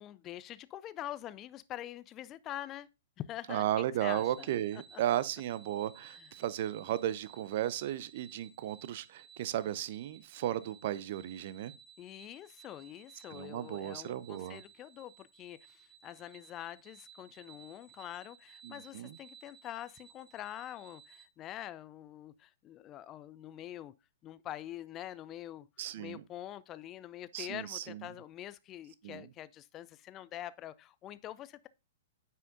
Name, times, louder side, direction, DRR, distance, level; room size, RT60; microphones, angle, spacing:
voice 1, 0.0-2.9 3.2-3.7 4.0-4.5 4.7-5.0 6.1-6.3 12.0-23.9 24.2-25.7 25.9-31.7, left 12 dB, 25° left, 0.3 m, -45 dB
voice 2, 3.5-11.7 13.3-14.6 18.6-19.2 25.8-26.2 27.3-28.1 29.0-29.3, right 12 dB, 45° right, 0.5 m, -35 dB
sound 1, 4.0-21.3, right 7 dB, 5° right, 1.0 m, -58 dB
9.2 x 5.5 x 2.6 m
figure-of-eight pair, 110°, 0 cm